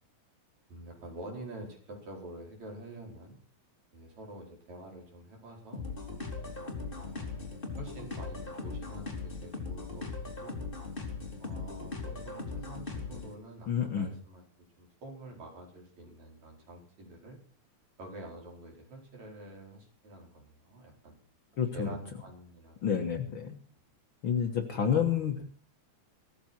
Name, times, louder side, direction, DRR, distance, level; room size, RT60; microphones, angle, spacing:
voice 1, 0.7-3.4 3.9-5.8 6.7-7.5 7.8-10.1 10.4-10.6 11.4-14.4 14.8-17.4 18.0-21.2 21.7-22.8 25.1-25.4, right 1 dB, 65° right, 0 dB, 6.3 m, -47 dB
sound 1, 5.7-13.3, left 4 dB, 15° left, 3.2 m, -39 dB
voice 2, 13.7-14.1 21.6-22.0 22.8-23.6 24.2-25.4, left 8 dB, 50° left, 6 dB, 1.8 m, -29 dB
17.5 x 14.5 x 4.5 m, 0.41 s
omnidirectional pair, 3.4 m